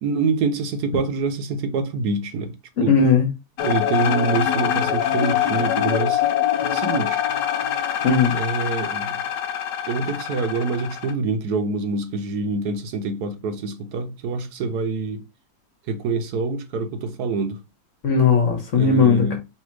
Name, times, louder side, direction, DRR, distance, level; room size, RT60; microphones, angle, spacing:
voice 1, 0.0-2.5 2.8-2.9 3.6-6.2 6.7-7.2 8.3-9.2 9.9-15.2 15.9-17.6 18.7-19.4, right 4 dB, 75° right, 1.1 m, -26 dB
voice 2, 2.9-3.3 8.0-8.3 18.0-19.4, left 5 dB, 50° left, 1.3 m, -17 dB
sound 1, 3.6-11.1, left 10 dB, 85° left, 1.2 m, -24 dB
3.3 x 2.8 x 4.5 m
omnidirectional pair, 1.8 m